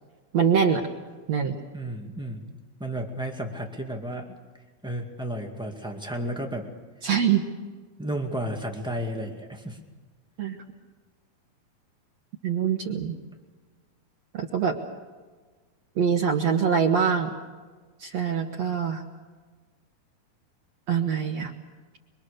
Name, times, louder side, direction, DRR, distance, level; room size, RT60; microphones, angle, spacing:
voice 1, 0.3-0.8 1.3-1.6 7.0-7.4 10.4-10.6 12.4-13.2 14.3-14.8 16.0-17.3 18.0-19.0 20.9-21.5, right 7 dB, 60° right, 1 dB, 2.1 m, -24 dB
voice 2, 1.7-4.3 4.8-6.7 8.0-9.8, right 1 dB, 5° right, 1 dB, 0.7 m, -33 dB
24.5 x 24.0 x 6.6 m, 1.4 s
omnidirectional pair, 4.4 m